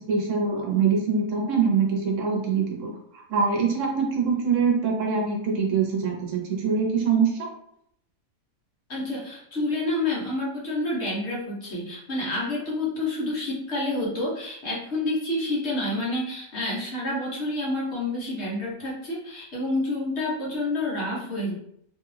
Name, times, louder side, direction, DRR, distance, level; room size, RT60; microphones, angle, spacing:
voice 1, 0.1-2.9 3.3-7.5, right 5 dB, 65° right, 0 dB, 1.1 m, -24 dB
voice 2, 8.9-21.5, left 2 dB, 55° left, -4 dB, 1.2 m, -28 dB
3.0 x 2.3 x 3.2 m, 0.70 s
omnidirectional pair, 1.5 m